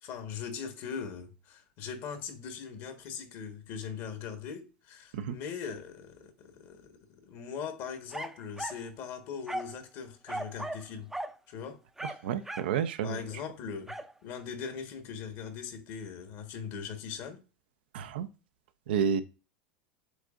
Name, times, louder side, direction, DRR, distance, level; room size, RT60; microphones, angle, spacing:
voice 1, 0.0-11.1 11.5-11.8 13.0-17.4, left 6 dB, 55° left, 1.3 m, -40 dB
sound 1, 8.1-8.9 9.5-9.8 10.3-10.9 11.1-11.4 12.0-12.8 13.9-14.1, right 1 dB, 5° right, 0.5 m, -37 dB
voice 2, 12.2-13.2 17.9-18.3 18.9-19.2, right 8 dB, 75° right, 0.5 m, -30 dB
7.9 x 2.6 x 2.5 m
hypercardioid pair, 95°, 5 cm